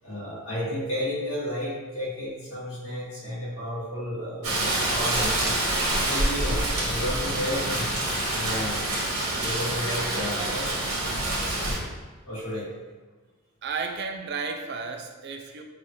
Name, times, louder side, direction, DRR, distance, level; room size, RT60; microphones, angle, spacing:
voice 1, 0.0-5.4 6.0-7.8 8.3-9.0 9.3-10.9 12.2-12.7, equal, 70° left, -8 dB, 1.2 m, -32 dB
Rain, 4.4-11.8, right 1 dB, 85° right, 1.1 m, -27 dB
Bathtub (filling or washing) / Splash splatter, 7.5-9.9 10.2-10.5, equal, 25° left, 0.8 m, -39 dB
voice 2, 13.6-15.6, right 4 dB, 50° right, 4 dB, 0.3 m, -33 dB
4.8 x 2.5 x 2.8 m, 1.3 s
head